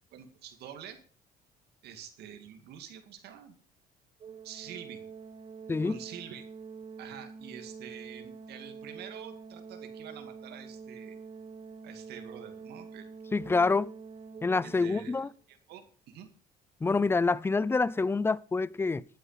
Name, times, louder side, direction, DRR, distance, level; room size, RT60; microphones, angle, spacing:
voice 1, 0.1-1.0 1.8-3.5 4.4-5.0 5.8-6.5 7.0-11.2 11.8-13.1 14.6-16.3, right 9 dB, 75° right, 2.3 m, -47 dB
Organ, 4.2-15.1, right 5 dB, 35° right, 1.4 m, -46 dB
voice 2, 5.7-6.0 13.3-13.9 14.4-15.3 16.8-19.0, left 4 dB, 15° left, 0.5 m, -27 dB
12.5 x 9.1 x 5.7 m
cardioid pair, 110°, 17 cm